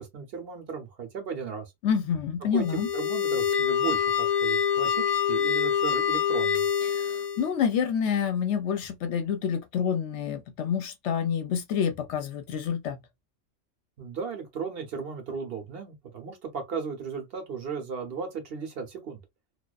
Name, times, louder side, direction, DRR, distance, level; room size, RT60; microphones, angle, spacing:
voice 1, 0.0-1.6 2.5-6.6 14.0-19.2, right 6 dB, 55° right, 0.8 m, -35 dB
voice 2, 1.8-2.9 6.9-13.0, left 7 dB, 70° left, 0.8 m, -28 dB
sound 1, 2.6-7.5, left 7 dB, 50° left, 0.5 m, -26 dB
2.3 x 2.3 x 2.2 m
omnidirectional pair, 1.3 m